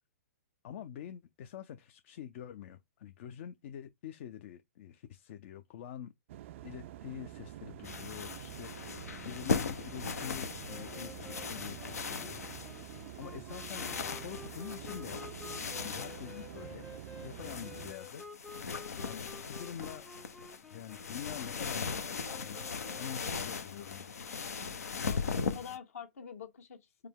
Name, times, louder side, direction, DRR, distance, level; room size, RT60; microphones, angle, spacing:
voice 1, 0.6-6.1 6.6-12.4 13.2-15.2 15.8-16.9 17.2-18.2 19.0-20.1 20.7-22.6 22.9-24.1, left 9 dB, 55° left, 0.5 m, -46 dB
sound 1, 6.3-17.9, right 13 dB, 55° right, 0.3 m, -48 dB
sound 2, 7.8-25.8, left 5 dB, 85° left, 0.7 m, -39 dB
sound 3, 10.7-23.3, left 3 dB, 5° left, 0.6 m, -51 dB
voice 2, 25.1-27.1, left 7 dB, 70° left, 1.4 m, -46 dB
4.9 x 2.2 x 3.5 m
hypercardioid pair, 125°, 8 cm